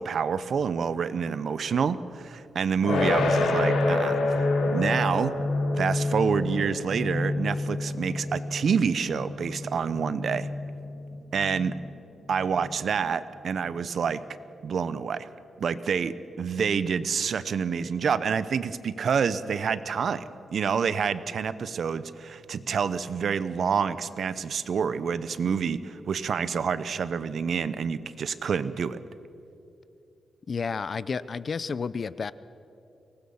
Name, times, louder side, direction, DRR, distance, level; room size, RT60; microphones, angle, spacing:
voice 1, 0.0-4.4 4.7-5.3 5.8-10.5 11.3-11.7 12.3-14.2 14.6-15.3 15.6-20.2 20.5-29.0, right 6 dB, 55° right, 15 dB, 0.8 m, -27 dB
sound 1, 2.8-13.8, left 2 dB, 85° left, 3.0 m, -29 dB
voice 2, 30.5-32.3, left 5 dB, 40° left, 17 dB, 0.5 m, -31 dB
24.0 x 19.0 x 7.2 m, 2.8 s
wide cardioid pair, 150°, 0 cm